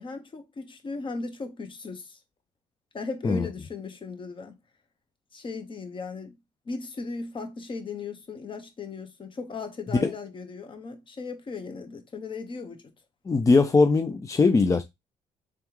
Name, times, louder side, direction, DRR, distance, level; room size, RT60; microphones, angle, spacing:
voice 1, 0.0-2.2 2.9-4.6 5.3-6.3 6.7-12.9, left 4 dB, 40° left, 1.1 m, -37 dB
voice 2, 13.3-14.8, left 4 dB, 25° left, 0.4 m, -20 dB
3.6 x 3.4 x 3.0 m
supercardioid pair, 75°, 14 cm